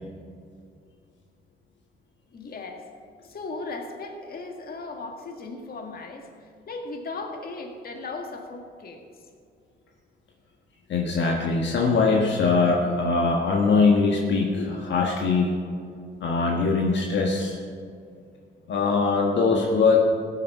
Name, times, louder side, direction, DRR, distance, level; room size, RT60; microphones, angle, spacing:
voice 1, 2.3-2.8 3.2-9.0, left 3 dB, 50° left, 3 dB, 1.9 m, -37 dB
voice 2, 10.9-15.5 16.2-17.6 18.7-20.0, left 4 dB, 65° left, -1 dB, 1.5 m, -22 dB
15.5 x 8.4 x 5.7 m, 2.3 s
cardioid pair, 90°, 20 cm